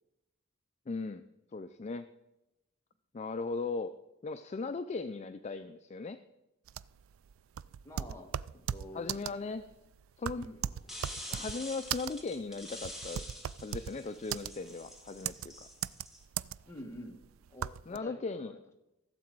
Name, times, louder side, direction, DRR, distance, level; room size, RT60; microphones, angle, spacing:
voice 1, 0.9-1.2 1.5-2.1 3.1-3.9 4.2-6.2 8.9-9.6 10.2-10.5 11.3-13.2 13.6-15.7 17.9-18.5, left 3 dB, 35° left, 10 dB, 0.4 m, -38 dB
sound 1, 6.7-18.0, right 10 dB, 75° right, 0.3 m, -38 dB
voice 2, 7.8-9.5 10.3-10.6 14.1-14.2 16.7-17.2 17.5-18.7, left 1 dB, 15° left, 1 dB, 1.5 m, -48 dB
sound 2, 10.9-16.2, equal, ahead, 1.6 m, -46 dB
16.0 x 7.4 x 4.6 m, 0.94 s
head